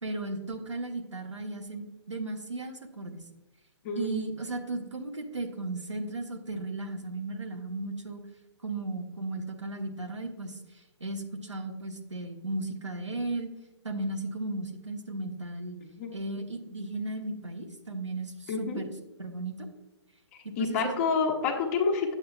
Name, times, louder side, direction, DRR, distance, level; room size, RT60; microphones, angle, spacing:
voice 1, 0.0-3.2 4.0-8.2 8.6-13.5 13.8-15.8 16.1-18.9 19.2-19.7 20.4-21.0, right 2 dB, 80° right, 3 dB, 1.2 m, -35 dB
voice 2, 3.8-4.3 16.0-16.1 18.5-18.8 20.6-22.2, left 5 dB, 30° left, 1 dB, 1.2 m, -28 dB
8.7 x 7.5 x 2.4 m, 1.1 s
figure-of-eight pair, 130°, 15 cm